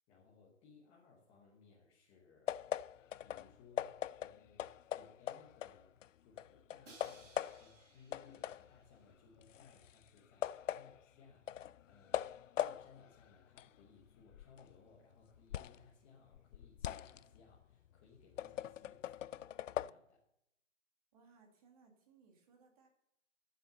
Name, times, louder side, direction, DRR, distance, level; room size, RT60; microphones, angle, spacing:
voice 1, 0.1-2.6 3.2-20.3, left 5 dB, 15° left, -4 dB, 1.1 m, -64 dB
sound 1, 2.5-6.1 6.4-7.8 8.1-15.9 16.2-19.9, left 11 dB, 80° left, 0.5 m, -42 dB
Crash cymbal, 6.8-8.9, right 2 dB, 75° right, 4.6 m, -61 dB
voice 2, 21.1-22.9, right 5 dB, 30° right, 2 dB, 2.3 m, -66 dB
12.5 x 7.7 x 6.7 m, 0.79 s
hypercardioid pair, 165°, 37 cm